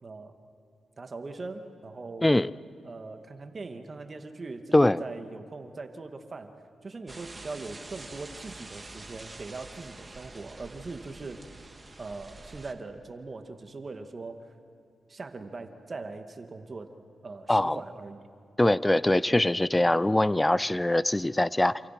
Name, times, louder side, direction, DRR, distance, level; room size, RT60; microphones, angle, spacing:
voice 1, 0.0-0.4 1.0-2.3 2.8-6.5 6.8-11.5 12.0-14.5 15.1-16.9 17.2-18.3, right 3 dB, 45° right, 6 dB, 2.3 m, -41 dB
sound 1, 7.1-12.7, right 2 dB, 30° right, 2.1 m, -46 dB
voice 2, 18.6-21.8, left 1 dB, 15° left, 19 dB, 0.7 m, -23 dB
29.0 x 27.5 x 6.1 m, 2.7 s
supercardioid pair, 45°, 0 cm